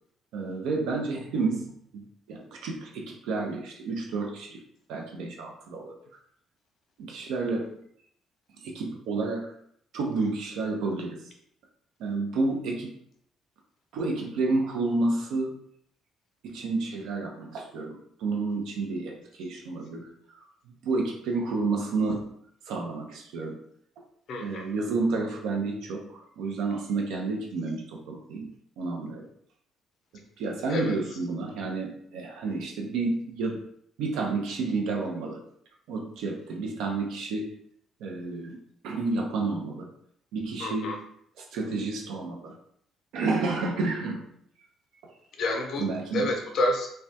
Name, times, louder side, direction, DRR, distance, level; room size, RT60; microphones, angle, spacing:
voice 1, 0.3-4.6 4.9-6.0 7.0-7.7 8.6-9.5 9.9-11.2 12.0-12.9 13.9-15.5 16.4-20.1 20.8-22.3 22.7-23.6 24.4-28.5 28.8-29.3 30.4-33.6 34.0-35.4 35.9-37.5 38.0-38.6 38.8-39.9 40.3-41.1 41.5-42.5 43.1-44.2 45.8-46.3, right 3 dB, 70° right, 0 dB, 0.5 m, -30 dB
voice 2, 24.3-24.7 30.7-31.0 40.6-41.0 45.4-45.9 46.1-46.9, left 1 dB, 60° left, 3 dB, 0.5 m, -28 dB
2.2 x 2.1 x 2.7 m, 0.68 s
hypercardioid pair, 45°, 0 cm